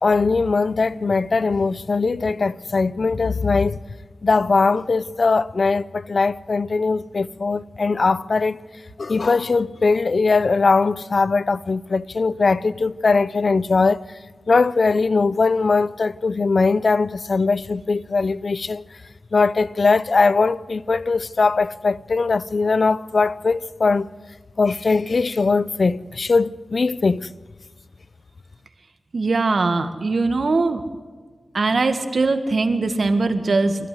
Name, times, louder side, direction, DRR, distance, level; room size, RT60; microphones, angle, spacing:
voice 1, 0.0-3.8 4.2-8.6 9.0-14.0 14.5-18.8 19.3-24.1 24.6-27.3, left 4 dB, 60° left, 0.6 m, -20 dB
voice 2, 29.1-30.8 31.5-33.9, right 3 dB, 65° right, 1.9 m, -21 dB
29.0 x 13.5 x 7.9 m
wide cardioid pair, 75°, 0 cm